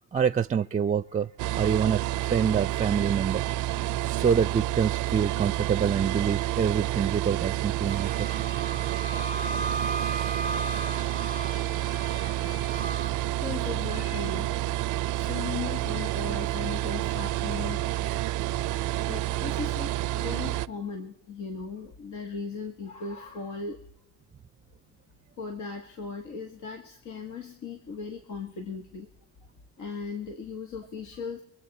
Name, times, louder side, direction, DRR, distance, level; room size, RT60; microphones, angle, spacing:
voice 1, 0.1-1.3 1.6-3.4 4.0-8.5, right 7 dB, 25° right, 15 dB, 0.4 m, -26 dB
sound 1, 1.4-20.7, right 14 dB, 85° right, 0.5 m, -29 dB
Wind instrument woodwind instrument, 7.9-13.1, right 1 dB, 30° left, 1.3 m, -36 dB
voice 2, 12.7-14.5 15.2-18.1 19.1-23.8 25.4-29.1 29.8-31.4, left 5 dB, 80° left, 3 dB, 1.9 m, -37 dB
25.0 x 8.6 x 4.3 m, 0.76 s
cardioid pair, 90°, 30 cm